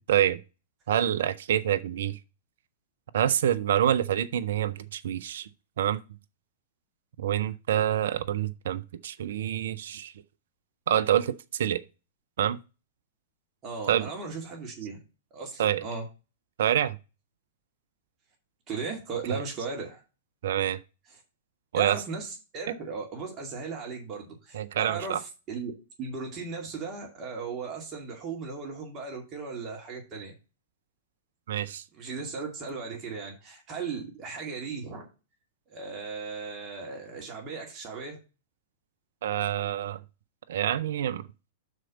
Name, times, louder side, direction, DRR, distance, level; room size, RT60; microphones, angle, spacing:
voice 1, 0.1-0.4 0.9-2.2 3.1-5.5 5.8-6.0 7.2-10.1 10.9-11.8 12.4-12.6 13.9-14.1 15.6-15.8 16.6-17.0 19.3-19.4 20.4-20.8 21.7-22.0 24.5-25.2 31.5-31.8 39.2-40.0 40.5-41.2, right 10 dB, 60° right, 0.5 m, -26 dB
voice 2, 13.6-15.0 15.3-16.1 18.7-20.0 21.7-25.7 26.0-30.3 31.9-35.1 35.7-38.2, right 4 dB, 30° right, 2.2 m, -37 dB
6.2 x 4.4 x 6.4 m
figure-of-eight pair, 100°, 0 cm